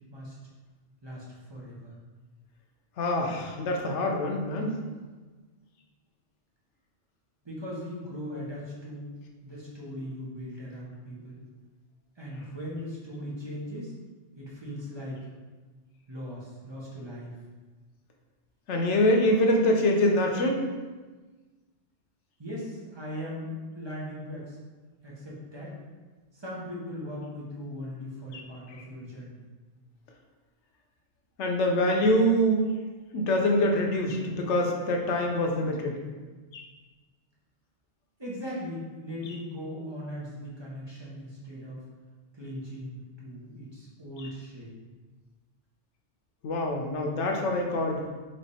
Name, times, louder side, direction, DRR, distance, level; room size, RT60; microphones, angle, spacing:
voice 1, 1.0-1.9 7.4-9.1 9.4-11.4 12.2-13.9 14.4-15.2 16.1-17.3 22.4-24.6 25.0-25.8 26.3-29.4 38.2-41.9 42.3-44.7, equal, 25° right, -6 dB, 0.9 m, -39 dB
voice 2, 3.0-4.7 18.7-20.6 28.3-28.4 28.7-28.8 31.4-32.7 33.1-36.0 36.5-36.6 44.2-44.3 46.4-48.1, left 1 dB, 90° left, 1 dB, 1.0 m, -25 dB
3.3 x 3.3 x 4.1 m, 1.3 s
omnidirectional pair, 1.2 m